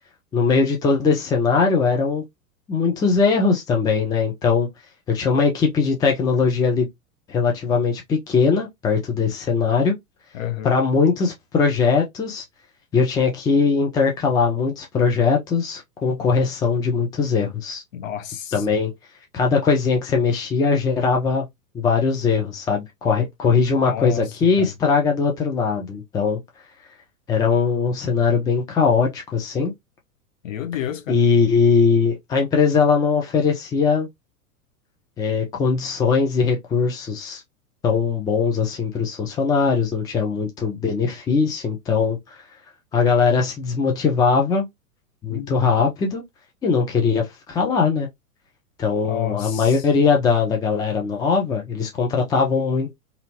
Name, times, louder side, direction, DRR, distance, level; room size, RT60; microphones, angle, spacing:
voice 1, 0.3-2.2 2.7-4.7 5.1-6.9 7.3-9.9 10.6-12.4 12.9-17.8 18.5-18.9 19.3-21.5 21.7-26.4 27.3-29.7 31.1-34.1 35.2-37.4 37.8-42.2 42.9-44.7 45.2-46.2 46.6-48.1 48.8-52.9, left 5 dB, 10° left, 0.5 m, -20 dB
voice 2, 10.3-10.7 17.9-18.6 23.8-24.3 24.6-24.7 30.4-31.2 45.3-45.7 49.0-49.8, left 11 dB, 55° left, 0.8 m, -29 dB
2.7 x 2.7 x 2.8 m
figure-of-eight pair, 100°, 46 cm